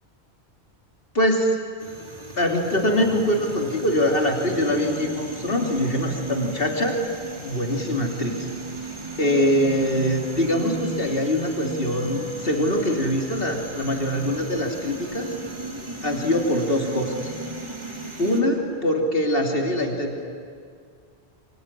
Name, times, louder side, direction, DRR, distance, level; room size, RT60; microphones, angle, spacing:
voice 1, 1.1-1.6 2.4-7.0 7.4-8.5 9.2-15.3 16.0-17.3 18.2-20.2, equal, 60° left, 2 dB, 3.4 m, -23 dB
sound 1, 1.8-18.4, right 2 dB, 25° right, 2.7 m, -35 dB
24.0 x 24.0 x 10.0 m, 2.2 s
omnidirectional pair, 1.1 m